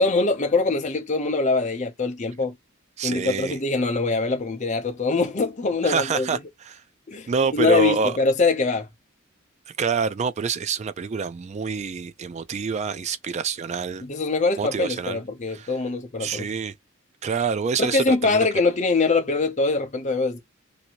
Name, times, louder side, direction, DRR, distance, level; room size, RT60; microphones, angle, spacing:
voice 1, 0.0-2.5 3.0-6.3 7.1-8.9 14.0-16.5 17.8-20.4, left 3 dB, 35° left, 0.6 m, -23 dB
voice 2, 3.0-3.6 5.8-6.4 6.7-6.8 7.3-8.1 9.8-14.1 14.6-15.2 15.5-15.7 16.2-16.7 17.2-18.5, right 5 dB, 35° right, 0.3 m, -26 dB
2.7 x 2.6 x 2.8 m
head